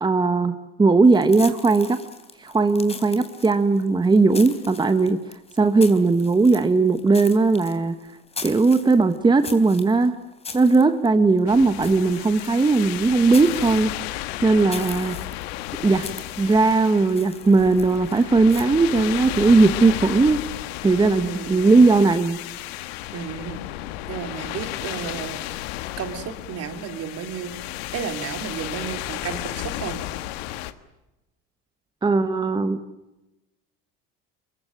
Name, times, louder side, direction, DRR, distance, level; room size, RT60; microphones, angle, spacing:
voice 1, 0.0-2.0 2.4-5.2 5.6-8.0 8.4-10.1 10.5-15.2 15.8-16.0 16.4-20.4 20.8-22.4 32.0-32.8, right 3 dB, 15° right, 9 dB, 1.2 m, -18 dB
sound 1, 1.0-18.6, left 4 dB, 20° left, 3.5 m, -41 dB
sound 2, 11.5-30.7, left 15 dB, 90° left, 1.5 m, -33 dB
voice 2, 21.2-21.7 23.1-23.6 24.1-25.4 26.0-27.5 27.9-30.1, right 7 dB, 55° right, 7 dB, 3.7 m, -33 dB
24.0 x 22.0 x 9.1 m, 0.99 s
supercardioid pair, 110°, 30 cm